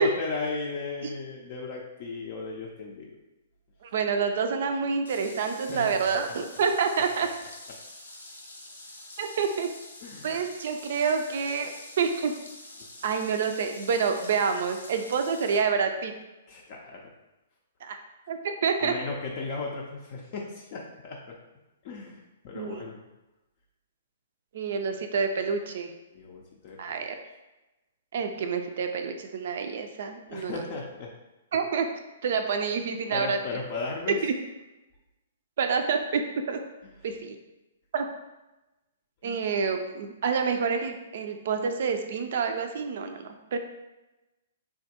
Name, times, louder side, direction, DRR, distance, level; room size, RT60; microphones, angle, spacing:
voice 1, 0.0-3.2 5.7-6.0 10.0-10.4 16.5-17.1 18.8-21.4 21.8-23.1 26.1-26.8 30.3-31.1 33.1-34.2 39.2-39.4, left 3 dB, 45° left, -2 dB, 0.4 m, -36 dB
voice 2, 3.8-7.3 9.2-9.7 10.2-12.3 13.0-16.1 17.8-18.0 18.3-18.9 22.5-22.8 24.5-25.9 26.8-27.2 28.1-30.6 31.5-31.9 32.2-33.4 34.2-34.3 35.6-36.2 36.5-36.6 37.0-37.3 37.9-38.1 39.2-43.6, right 5 dB, 55° right, 6 dB, 0.3 m, -28 dB
sound 1, 5.1-15.6, left 2 dB, 80° left, 0.6 m, -46 dB
3.4 x 2.2 x 2.8 m, 1.0 s
figure-of-eight pair, 120°, 0 cm